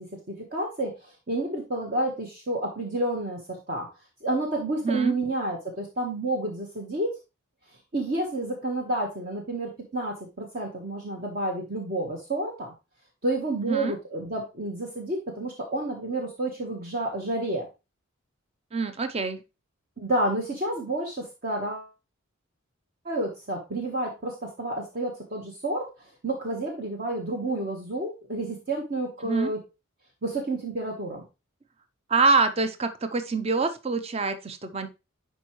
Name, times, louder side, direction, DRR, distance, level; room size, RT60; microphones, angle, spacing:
voice 1, 0.0-3.9 4.2-7.2 7.9-12.7 13.2-17.7 20.0-21.9 23.0-25.8 26.2-29.6 30.2-31.2, right 1 dB, 45° right, 0 dB, 1.3 m, -30 dB
voice 2, 4.8-5.1 13.7-13.9 18.7-19.4 29.2-29.5 32.1-34.9, right 4 dB, 30° right, 9 dB, 0.5 m, -25 dB
10.5 x 4.5 x 3.1 m, 0.27 s
head